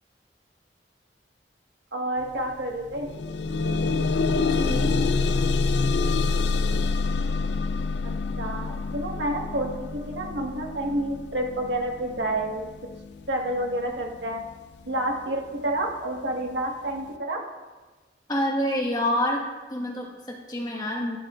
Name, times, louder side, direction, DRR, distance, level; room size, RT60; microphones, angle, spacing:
voice 1, 1.9-3.1 8.0-12.7 13.3-14.4 14.9-17.4, right 1 dB, 80° right, 1 dB, 1.6 m, -29 dB
sound 1, 2.2-2.4 2.7-13.7 14.5-14.6 15.1-15.2, left 4 dB, 80° left, 0.4 m, -26 dB
voice 2, 4.3-5.0 18.3-19.4 19.7-21.2, equal, 25° left, -1 dB, 1.6 m, -27 dB
12.0 x 11.5 x 2.5 m, 1.3 s
head